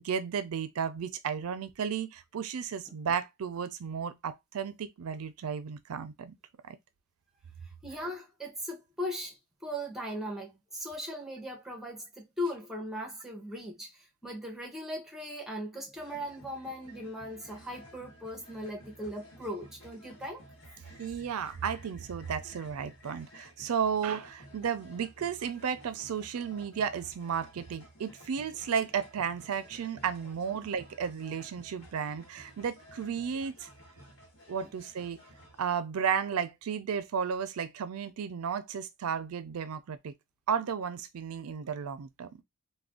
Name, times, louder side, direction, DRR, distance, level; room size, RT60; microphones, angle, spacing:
voice 1, 0.0-6.3 6.7-6.8 21.0-33.7 34.5-35.2 35.6-40.1 40.5-42.4, right 7 dB, 75° right, 0.4 m, -33 dB
voice 2, 7.8-20.4, equal, ahead, 0.7 m, -38 dB
sound 1, 16.0-35.6, equal, 60° left, 1.3 m, -54 dB
2.5 x 2.2 x 3.5 m
head